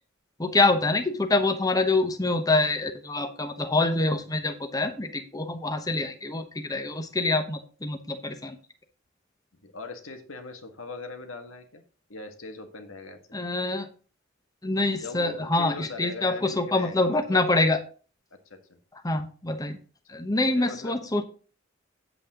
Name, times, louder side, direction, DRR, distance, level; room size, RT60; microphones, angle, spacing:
voice 1, 0.4-8.6 13.3-13.9 14.6-17.8 19.0-19.8 20.1-21.2, left 2 dB, 20° left, 7 dB, 1.0 m, -25 dB
voice 2, 9.6-11.8 12.1-13.2 15.0-17.4 18.3-18.8 20.1-20.2 20.5-20.9, left 3 dB, 85° left, 5 dB, 1.9 m, -40 dB
8.6 x 8.3 x 3.8 m, 0.37 s
head